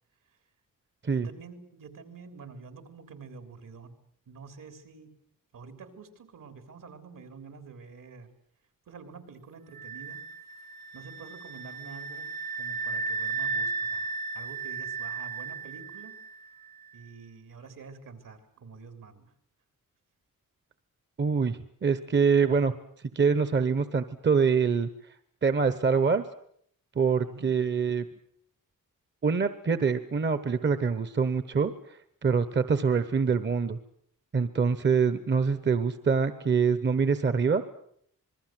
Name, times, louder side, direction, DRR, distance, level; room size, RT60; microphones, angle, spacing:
voice 1, 1.1-3.9 4.3-5.2 5.5-8.3 8.9-10.2 10.9-16.2 16.9-19.3 27.2-27.5, right 5 dB, 70° right, 10 dB, 3.7 m, -47 dB
sound 1, 9.7-16.5, right 4 dB, 90° right, 2.3 m, -35 dB
voice 2, 21.2-22.7 23.1-24.9 25.4-26.2 27.0-28.1 29.2-31.7 32.2-33.8 34.3-37.6, right 5 dB, 35° right, 13 dB, 1.1 m, -25 dB
27.0 x 21.0 x 7.7 m, 0.66 s
wide cardioid pair, 175°, 33 cm